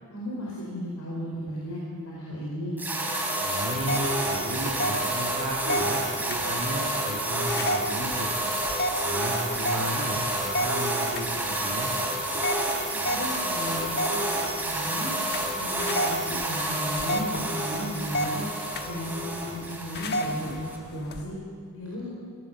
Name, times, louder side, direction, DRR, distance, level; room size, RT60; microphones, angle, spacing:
voice 1, 0.1-2.8 13.0-14.2 14.6-15.1 15.5-18.5 18.8-21.4 21.7-22.1, equal, 75° left, -5 dB, 4.8 m, -35 dB
sound 1, 2.8-20.8, right 1 dB, 10° right, 3.3 m, -29 dB
voice 2, 3.4-8.4 9.0-11.9, right 1 dB, 65° right, -5 dB, 2.5 m, -34 dB
sound 2, 3.8-21.2, equal, 50° left, 1.2 m, -34 dB
22.5 x 17.0 x 7.5 m, 2.2 s
head